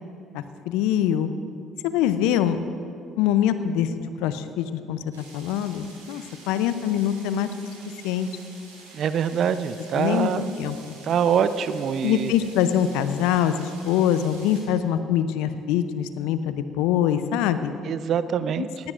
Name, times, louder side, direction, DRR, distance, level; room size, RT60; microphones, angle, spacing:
voice 1, 0.3-1.3 1.8-2.6 3.2-7.5 8.0-8.3 9.9-10.3 10.6-10.8 12.0-17.7 18.6-18.7, left 10 dB, 70° left, 12 dB, 0.6 m, -24 dB
sound 1, 5.1-14.6, right 2 dB, 90° right, 3.1 m, -48 dB
voice 2, 8.9-10.5 11.0-12.3 17.8-18.7, right 8 dB, 55° right, 14 dB, 0.6 m, -24 dB
18.5 x 15.5 x 2.5 m, 2.5 s
hypercardioid pair, 55°, 0 cm